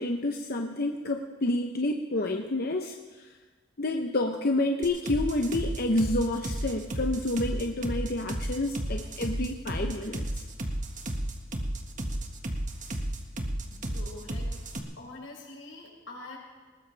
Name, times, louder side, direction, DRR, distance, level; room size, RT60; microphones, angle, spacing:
voice 1, 0.0-3.4 3.8-10.4, left 2 dB, 50° left, 3 dB, 0.9 m, -29 dB
sound 1, 4.8-14.8, right 1 dB, 40° right, 1.6 m, -32 dB
voice 2, 13.7-14.6 15.0-16.4, left 2 dB, 90° left, -3 dB, 6.2 m, -45 dB
20.5 x 19.5 x 3.4 m, 1.4 s
head